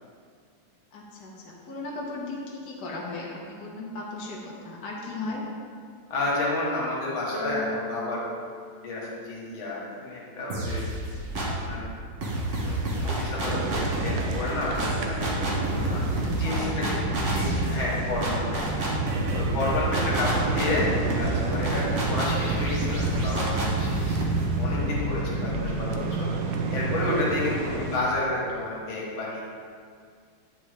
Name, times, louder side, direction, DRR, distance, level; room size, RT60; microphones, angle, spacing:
voice 1, 0.9-5.4 13.5-13.8 16.0-17.0 19.7-20.0 25.2-25.5 27.4-27.7, left 2 dB, 60° left, -4 dB, 1.5 m, -37 dB
voice 2, 6.1-8.2 8.8-10.8 11.4-11.9 12.7-18.7 19.3-29.4, left 2 dB, 85° left, -5 dB, 2.2 m, -31 dB
sound 1, 7.3-9.9, left 1 dB, 40° left, 1.4 m, -38 dB
sound 2, 10.5-11.7 12.2-25.9, right 1 dB, 45° right, 1.1 m, -29 dB
sound 3, 13.5-28.0, right 3 dB, 70° right, 1.0 m, -31 dB
8.5 x 5.2 x 3.4 m, 2.1 s
omnidirectional pair, 2.2 m